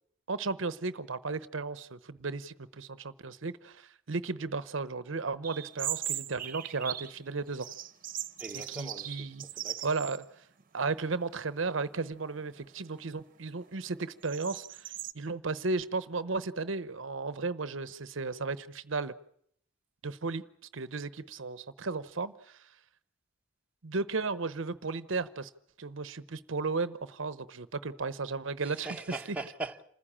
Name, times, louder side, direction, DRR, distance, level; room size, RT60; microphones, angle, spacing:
voice 1, 0.3-7.7 8.7-9.4 9.8-10.2 10.7-19.1 20.0-20.4 20.7-22.7 23.8-25.5 25.8-28.9, right 4 dB, 70° right, 0.9 m, -34 dB
sound 1, 5.4-7.2 7.5-10.2 10.6-10.7 11.4-11.8 12.3-15.1, right 11 dB, 45° right, 1.1 m, -39 dB
voice 2, 8.4-10.0 28.6-29.8, right 2 dB, 5° right, 1.3 m, -41 dB
27.5 x 15.0 x 8.7 m
head